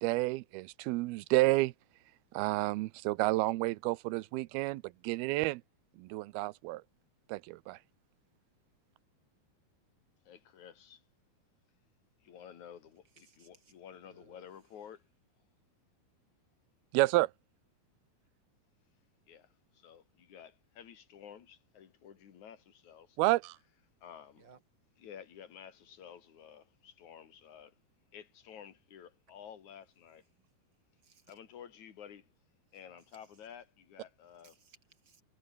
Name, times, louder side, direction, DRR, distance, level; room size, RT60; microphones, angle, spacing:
voice 1, 0.0-1.7 2.3-5.6 6.0-6.8 7.3-7.8 16.9-17.3 23.2-23.6, right 20 dB, 80° right, 2.5 m, -30 dB
voice 2, 10.3-11.0 12.2-15.0 19.3-23.2 24.0-24.5 25.0-27.8 28.1-30.2 31.3-32.3 32.7-34.5, left 8 dB, 55° left, 3.5 m, -52 dB
voice 3, 13.1-13.7 14.0-14.5 24.3-24.6 30.3-30.5 31.0-31.3 32.9-33.3 34.4-35.2, right 5 dB, 30° right, 3.1 m, -63 dB
omnidirectional pair, 4.5 m